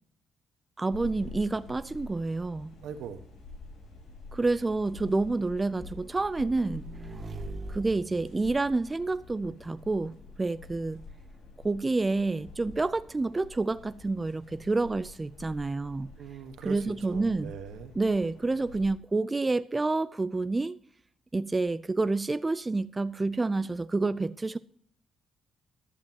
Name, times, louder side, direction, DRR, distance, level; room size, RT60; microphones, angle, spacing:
voice 1, 0.8-2.8 4.3-6.9 7.7-11.0 11.6-16.1 16.6-17.5 18.0-20.8 21.3-24.6, right 3 dB, 20° right, 0.4 m, -28 dB
sound 1, 0.9-18.9, left 3 dB, 70° left, 3.7 m, -48 dB
Motorcycle / Engine, 2.4-9.4, right 4 dB, 35° right, 1.5 m, -46 dB
voice 2, 2.8-3.2 16.2-17.9, right 7 dB, 80° right, 1.3 m, -41 dB
14.5 x 11.5 x 2.9 m
cardioid pair, 90°, 0 cm